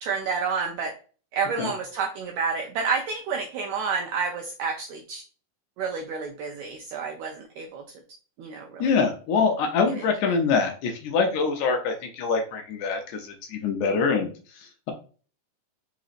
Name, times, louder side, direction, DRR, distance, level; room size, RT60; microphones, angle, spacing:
voice 1, 0.0-0.9 1.3-5.2 5.8-7.8 8.4-8.9, right 5 dB, 85° right, 2 dB, 1.6 m, -29 dB
voice 2, 8.8-14.3 14.6-14.9, left 5 dB, 80° left, 4 dB, 1.8 m, -24 dB
4.9 x 3.9 x 2.5 m, 0.39 s
omnidirectional pair, 3.8 m